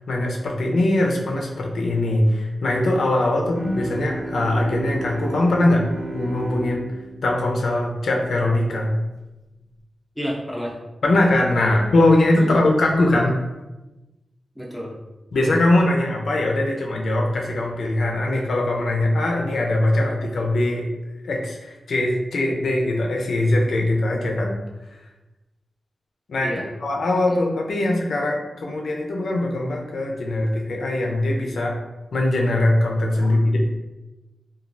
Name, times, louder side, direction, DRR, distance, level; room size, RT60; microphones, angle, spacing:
voice 1, 0.1-5.9 6.1-6.9 7.2-8.9 11.0-13.4 15.3-20.8 21.2-24.6 26.3-26.5 26.8-31.8 32.1-33.6, left 1 dB, 90° left, 0 dB, 0.5 m, -21 dB
Bowed string instrument, 3.5-9.0, right 1 dB, 70° right, 0.5 m, -33 dB
voice 2, 10.2-10.8 11.6-11.8 12.4-12.6 14.5-14.9 26.4-26.6 27.3-27.4 33.2-33.4, equal, ahead, -5 dB, 0.6 m, -31 dB
3.1 x 2.3 x 2.5 m, 1.1 s
wide cardioid pair, 130°, 0 cm